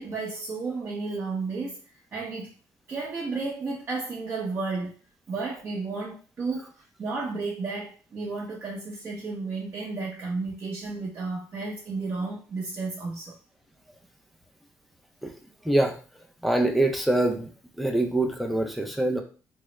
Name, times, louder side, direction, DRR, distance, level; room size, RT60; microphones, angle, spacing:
voice 1, 0.0-1.8 2.1-2.5 2.9-5.0 5.3-13.4, right 3 dB, 35° right, -4 dB, 0.7 m, -32 dB
voice 2, 15.6-16.0 16.4-17.5 17.8-19.2, right 1 dB, ahead, 4 dB, 0.5 m, -24 dB
3.6 x 2.0 x 3.1 m, 0.37 s
cardioid pair, 140°, 7 cm